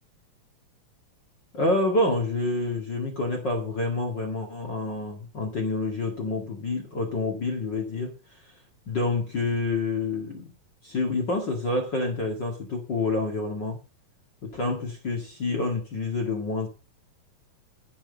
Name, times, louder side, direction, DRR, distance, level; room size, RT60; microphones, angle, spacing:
voice 1, 1.5-8.1 8.9-10.5 10.8-13.8 14.4-16.7, left 2 dB, 35° left, 1 dB, 2.2 m, -28 dB
9.0 x 7.5 x 6.8 m, 0.34 s
omnidirectional pair, 3.9 m